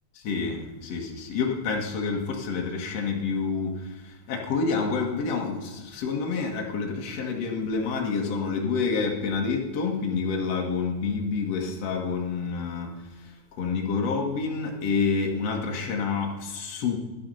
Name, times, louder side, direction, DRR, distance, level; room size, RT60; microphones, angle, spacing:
voice 1, 0.2-12.9 13.5-17.0, left 4 dB, 65° left, 1 dB, 1.5 m, -28 dB
12.5 x 11.0 x 5.6 m, 1.2 s
omnidirectional pair, 5.8 m